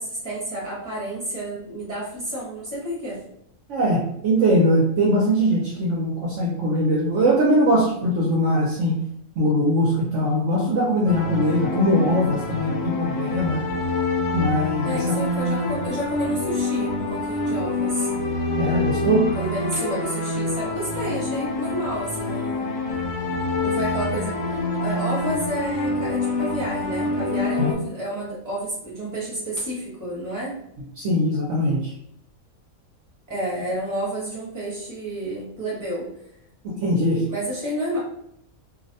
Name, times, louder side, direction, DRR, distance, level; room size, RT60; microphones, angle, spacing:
voice 1, 0.0-3.2 12.9-13.0 14.8-18.1 19.3-22.7 23.6-30.6 33.3-36.1 37.3-38.0, right 1 dB, 15° right, -6 dB, 0.9 m, -30 dB
voice 2, 3.7-9.0 9.4-13.6 14.3-15.0 18.6-19.3 27.6-27.7 31.0-31.9 36.8-37.2, equal, 65° right, -4 dB, 0.8 m, -21 dB
sound 1, 11.1-27.7, left 2 dB, 70° left, 0.9 m, -26 dB
2.6 x 2.1 x 2.6 m, 0.72 s
omnidirectional pair, 1.5 m